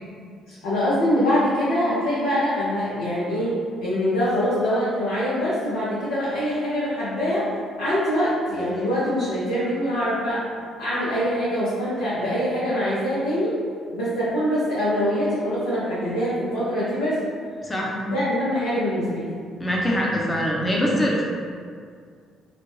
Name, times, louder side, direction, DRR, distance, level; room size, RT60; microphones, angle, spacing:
voice 1, 0.5-7.5 7.8-10.4 10.8-13.5 13.9-17.2 18.0-19.3, equal, 80° left, -11 dB, 0.6 m, -24 dB
voice 2, 17.6-18.0 19.6-21.2, equal, 25° left, -3 dB, 0.7 m, -23 dB
2.5 x 2.1 x 3.1 m, 2.1 s
hypercardioid pair, 50°, 0 cm